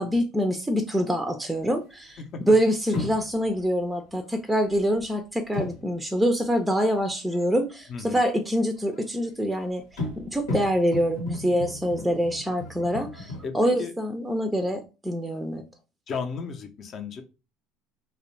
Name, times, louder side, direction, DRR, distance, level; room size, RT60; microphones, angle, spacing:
voice 1, 0.0-2.2 2.5-15.6, equal, 5° right, 0.4 m, -25 dB
sound 1, 2.0-2.1 2.9-3.6 4.0-5.0 5.5-6.0 6.3-6.4 6.6-7.4 8.8-9.3 9.6-13.5, left 2 dB, 90° left, 1.1 m, -35 dB
voice 2, 7.9-8.2 13.4-13.9 16.1-17.2, left 5 dB, 45° left, 0.6 m, -34 dB
2.4 x 2.1 x 3.1 m
supercardioid pair, 100°, 0 cm